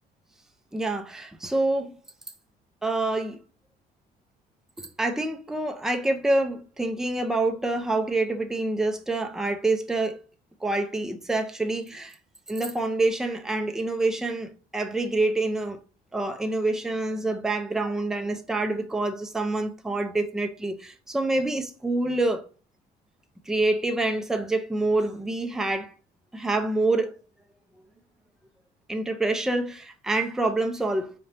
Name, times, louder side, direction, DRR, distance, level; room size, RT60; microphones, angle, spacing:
voice 1, 0.7-1.9 2.8-3.4 4.8-10.2 10.6-12.2 12.5-15.8 16.1-22.4 23.5-25.9 26.3-27.1 28.9-31.1, right 2 dB, 5° right, 0.5 m, -26 dB
4.1 x 2.7 x 3.2 m
cardioid pair, 110°, 17 cm